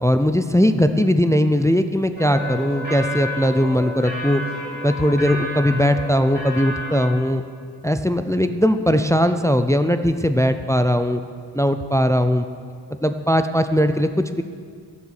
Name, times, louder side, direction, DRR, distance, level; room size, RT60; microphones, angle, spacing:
voice 1, 0.0-4.4 4.8-7.4 7.8-11.2 11.5-12.4 13.0-14.4, equal, 5° left, 9 dB, 0.4 m, -19 dB
sound 1, 2.2-7.1, left 1 dB, 20° right, 2.6 m, -31 dB
14.0 x 7.2 x 6.4 m, 2.1 s
wide cardioid pair, 95°, 44 cm